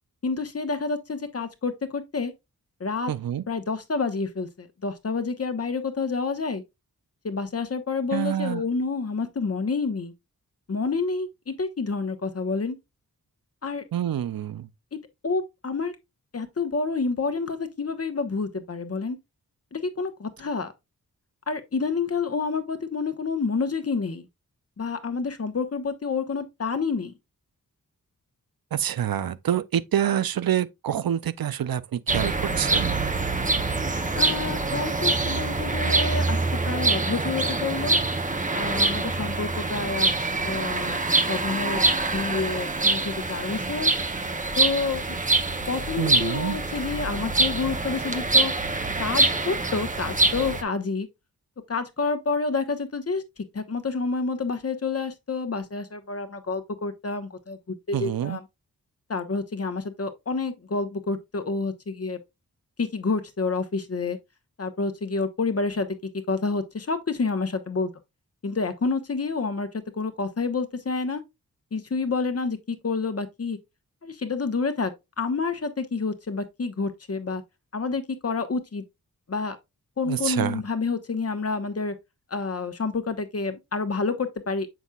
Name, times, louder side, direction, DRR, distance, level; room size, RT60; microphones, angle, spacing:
voice 1, 0.2-2.3 2.8-3.1 3.5-6.6 7.2-10.1 10.7-12.8 13.6-13.8 14.9-15.9 16.3-19.2 19.7-20.7 21.5-24.3 24.8-27.1 34.1-36.4 36.7-38.0 38.5-40.1 40.4-41.0 41.3-41.8 42.1-43.9 44.6-45.0 45.7-48.5 49.0-51.1 51.7-53.2 53.5-57.6 57.9-58.4 59.1-62.2 62.8-64.2 64.6-65.9 66.3-67.9 68.4-71.2 71.7-73.6 74.0-74.9 75.2-77.4 77.7-78.8 79.3-79.6 80.0-81.9 82.3-84.7, left 4 dB, 45° left, 1.2 m, -28 dB
voice 2, 3.1-3.4 8.1-8.6 13.9-14.7 28.7-33.1 46.0-46.6 57.9-58.4 80.1-80.6, right 10 dB, 85° right, 0.6 m, -27 dB
sound 1, 32.1-50.6, right 3 dB, 20° right, 0.9 m, -25 dB
7.2 x 6.1 x 2.4 m
wide cardioid pair, 120°, 34 cm